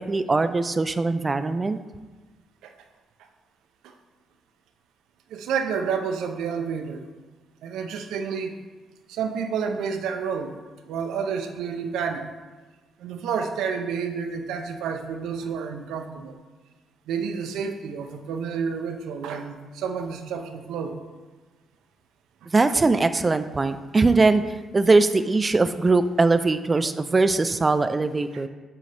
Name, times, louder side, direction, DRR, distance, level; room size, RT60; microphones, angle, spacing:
voice 1, 0.1-1.8 22.5-24.4 24.7-28.5, right 3 dB, 25° right, 11 dB, 0.3 m, -21 dB
voice 2, 5.3-7.0 7.6-8.5 9.1-10.5 10.9-12.3 13.0-16.3 17.1-20.9 22.7-22.8, right 6 dB, 85° right, 5 dB, 0.5 m, -29 dB
7.7 x 3.9 x 3.3 m, 1.3 s
cardioid pair, 90°, 0 cm